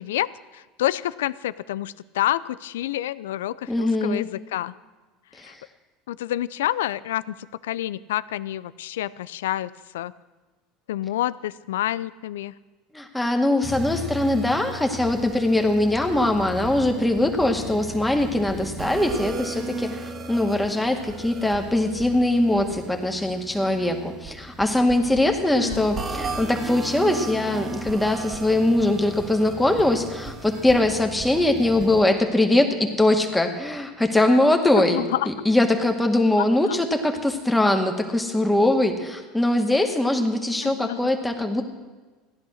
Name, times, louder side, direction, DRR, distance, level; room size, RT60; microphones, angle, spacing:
voice 1, 0.0-4.7 5.4-5.5 6.1-7.3 7.6-10.1 10.9-12.5 25.6-25.9 34.7-35.3 36.4-36.8 40.6-41.2, left 13 dB, 85° left, 19 dB, 0.4 m, -28 dB
voice 2, 3.7-4.2 5.4-5.5 12.9-41.6, left 1 dB, 5° left, 3 dB, 2.1 m, -22 dB
sound 1, 13.6-32.0, right 2 dB, 30° right, 2.0 m, -36 dB
15.5 x 10.5 x 6.4 m, 1.3 s
hypercardioid pair, 90°, 0 cm